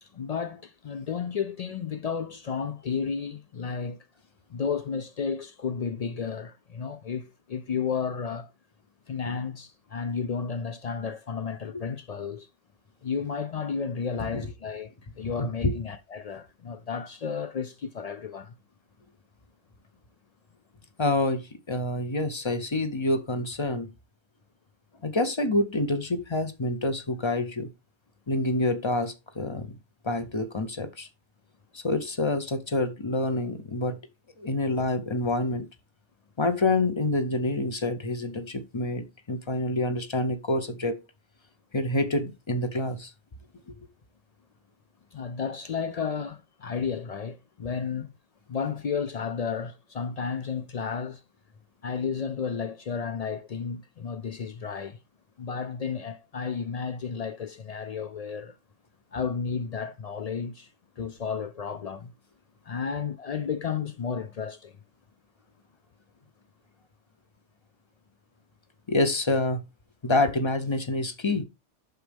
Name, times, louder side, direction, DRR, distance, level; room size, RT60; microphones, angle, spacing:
voice 1, 0.0-4.1 4.5-8.5 9.1-12.5 13.0-18.6 45.1-48.1 48.5-51.2 51.8-55.0 55.4-58.6 59.1-60.7 61.0-62.1 62.7-64.7, left 6 dB, 65° left, 0.3 m, -32 dB
voice 2, 15.4-15.7 21.0-23.9 25.0-27.7 28.3-29.7 30.0-31.1 31.7-34.0 34.4-35.7 36.4-41.0 41.7-43.1 43.7-43.8 68.9-69.6 70.0-71.4, left 2 dB, 30° left, 0.7 m, -27 dB
8.0 x 6.3 x 3.5 m
omnidirectional pair, 1.2 m